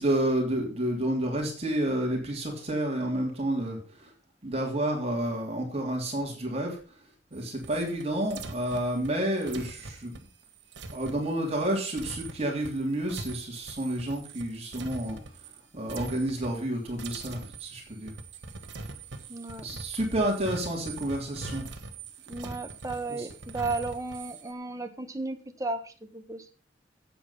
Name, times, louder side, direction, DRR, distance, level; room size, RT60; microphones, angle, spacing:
voice 1, 0.0-4.1 4.4-6.8 7.3-10.1 10.9-15.2 15.7-18.1 19.6-21.7 23.1-23.3, right 1 dB, 35° right, 0 dB, 3.0 m, -30 dB
sound 1, 7.3-15.6 15.9-16.7 17.0-24.5, right 3 dB, 70° right, 1.3 m, -42 dB
voice 2, 19.3-19.7 22.3-26.5, right 3 dB, 20° right, 7 dB, 1.2 m, -34 dB
8.5 x 8.2 x 5.5 m, 0.38 s
head